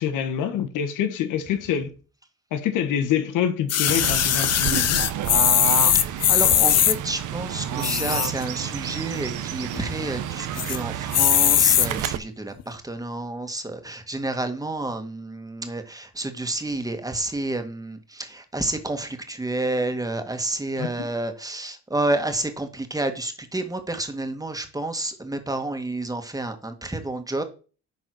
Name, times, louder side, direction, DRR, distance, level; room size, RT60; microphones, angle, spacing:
voice 1, 0.0-1.9 2.5-5.0 20.8-21.1, left 9 dB, 90° left, 1.3 m, -26 dB
sound 1, 3.7-7.0 7.7-8.4 8.9-9.0 9.2-9.3 9.6-10.1 10.6-10.8 11.1-11.9 12.6-12.7, left 11 dB, 55° left, 0.7 m, -20 dB
Fowl / Bird, 3.9-12.2, right 10 dB, 80° right, 0.9 m, -30 dB
voice 2, 5.9-27.4, right 2 dB, 10° right, 1.8 m, -30 dB
10.5 x 4.2 x 6.3 m
cardioid pair, 90°, 30 cm